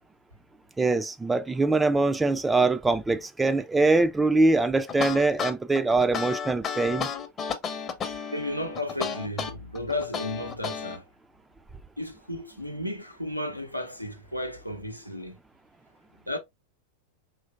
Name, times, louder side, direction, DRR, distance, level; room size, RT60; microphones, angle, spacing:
voice 1, 0.8-7.1, right 3 dB, 10° right, 0.3 m, -23 dB
sound 1, 4.9-11.0, left 6 dB, 25° left, 0.7 m, -32 dB
voice 2, 8.3-11.1 12.0-15.4 16.2-16.4, left 1 dB, 90° left, 0.7 m, -33 dB
5.2 x 3.0 x 2.4 m
figure-of-eight pair, 90°, 0 cm